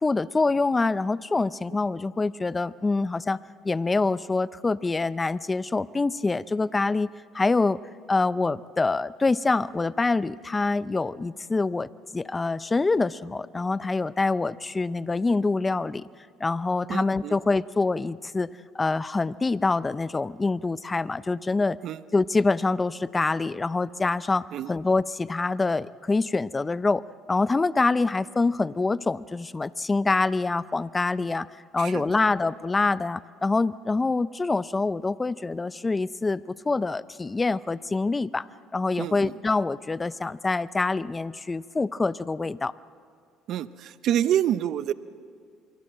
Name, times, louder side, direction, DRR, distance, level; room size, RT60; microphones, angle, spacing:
voice 1, 0.0-3.4 3.6-7.1 7.3-7.8 8.1-16.1 16.4-18.5 18.7-21.8 22.1-27.0 27.3-31.5 31.7-38.5 38.7-42.7, left 3 dB, 20° left, 18 dB, 0.5 m, -25 dB
voice 2, 16.9-17.4 21.8-22.0 24.5-24.7 31.8-32.0 39.0-39.3 43.5-44.9, right 11 dB, 60° right, 15 dB, 0.7 m, -27 dB
25.5 x 23.0 x 7.7 m, 2.3 s
supercardioid pair, 100°, 0 cm